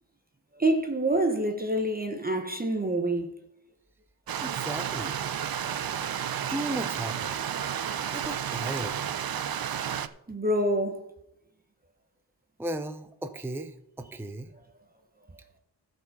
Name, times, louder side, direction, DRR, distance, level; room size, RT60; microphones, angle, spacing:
voice 1, 0.6-3.4 10.3-11.1, right 1 dB, 20° right, 1.0 m, -26 dB
Stream, 4.3-10.1, right 9 dB, 55° right, 0.6 m, -32 dB
voice 2, 4.4-5.2 6.5-7.4 8.1-9.0 12.6-14.5, right 1 dB, 5° right, 0.6 m, -35 dB
13.5 x 5.5 x 5.4 m
wide cardioid pair, 105°, 42 cm